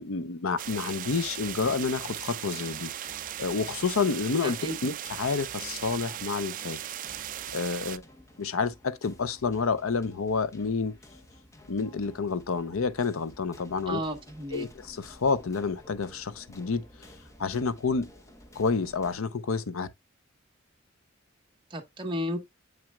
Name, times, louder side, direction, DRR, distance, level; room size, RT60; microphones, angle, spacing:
voice 1, 0.0-2.9 3.2-6.8 7.5-8.0 8.4-10.9 11.7-14.0 14.5-17.1 17.4-18.1 18.6-19.9, left 4 dB, 85° left, 0.6 m, -29 dB
sound 1, 0.6-19.2, left 1 dB, 15° left, 0.8 m, -53 dB
sound 2, 0.6-8.0, right 12 dB, 40° right, 0.3 m, -38 dB
voice 2, 4.4-4.8 13.9-14.7 21.7-22.4, equal, 25° right, 1.2 m, -33 dB
7.6 x 6.0 x 2.2 m
head